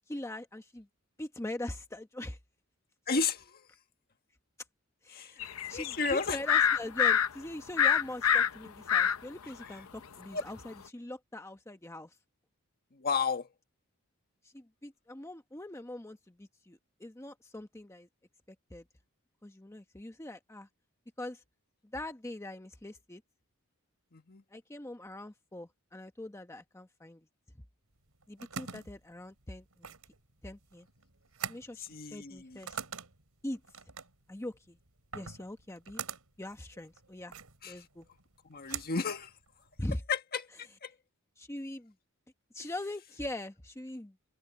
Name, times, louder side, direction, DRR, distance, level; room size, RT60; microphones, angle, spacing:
voice 1, 0.1-0.9 1.2-2.4 5.0-12.2 14.4-18.1 18.5-18.8 19.4-20.7 21.2-21.4 21.9-23.2 24.5-27.2 28.3-29.9 30.4-30.9 31.5-32.8 33.4-33.6 34.3-34.8 35.1-36.0 36.4-37.4 37.6-38.1 38.7-38.8 39.8-40.0 41.4-41.9 42.5-44.3, left 1 dB, 15° left, 0.9 m, -42 dB
voice 2, 3.1-3.7 5.1-5.4 5.7-6.4 10.3-10.4 12.9-13.5 24.1-24.4 31.8-32.6 37.6-37.8 38.4-39.3 40.1-40.5 40.8-40.9, left 5 dB, 45° left, 1.6 m, -33 dB
sound 1, 5.4-7.3 7.8-9.2 9.6-9.7, left 8 dB, 75° left, 0.8 m, -25 dB
sound 2, 28.0-39.9, right 7 dB, 85° right, 4.3 m, -45 dB
open air
head